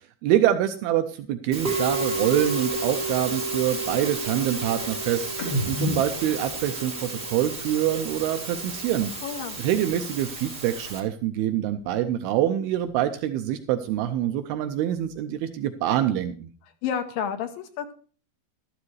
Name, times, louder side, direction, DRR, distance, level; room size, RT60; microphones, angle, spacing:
voice 1, 0.0-9.1 9.6-16.5, right 12 dB, 80° right, 8 dB, 2.5 m, -25 dB
Musical instrument, 1.5-11.0, right 3 dB, 30° right, 1.0 m, -31 dB
sound 1, 5.3-8.9 9.2-11.1 11.3-13.2 13.6-15.4, left 1 dB, 55° left, 4.1 m, -37 dB
voice 2, 9.2-9.6 16.8-17.9, left 8 dB, 75° left, 7 dB, 2.3 m, -30 dB
12.5 x 12.0 x 3.2 m, 0.41 s
omnidirectional pair, 4.4 m